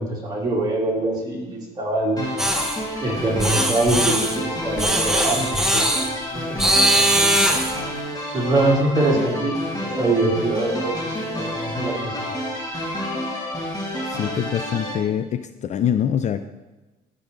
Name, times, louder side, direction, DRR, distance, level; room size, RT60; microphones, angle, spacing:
voice 1, 0.0-2.2 3.0-6.6 6.9-7.2 8.3-12.3, right 2 dB, 25° right, -4 dB, 3.0 m, -24 dB
sound 1, 2.2-14.9, equal, 20° left, 2.2 m, -29 dB
sound 2, 2.4-2.8 3.4-4.4 4.8-6.1 6.6-7.8, right 1 dB, 5° right, 0.9 m, -20 dB
voice 2, 14.1-16.4, left 9 dB, 45° left, 11 dB, 0.4 m, -24 dB
13.5 x 5.3 x 3.8 m, 1.1 s
cardioid pair, 110°, 17 cm